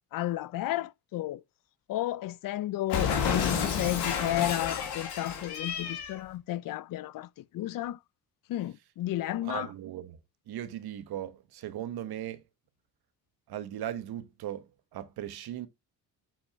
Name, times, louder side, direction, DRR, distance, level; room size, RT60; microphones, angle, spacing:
voice 1, 0.1-1.4 1.9-7.3 7.5-8.0 8.5-9.7, left 14 dB, 60° left, 0.5 m, -32 dB
Cat, 2.9-6.2, left 7 dB, 85° left, 1.9 m, -30 dB
voice 2, 9.4-10.2 10.5-12.4 13.5-14.7 14.9-15.7, right 11 dB, 70° right, 1.2 m, -38 dB
7.6 x 4.4 x 3.4 m
cardioid pair, 95°, 39 cm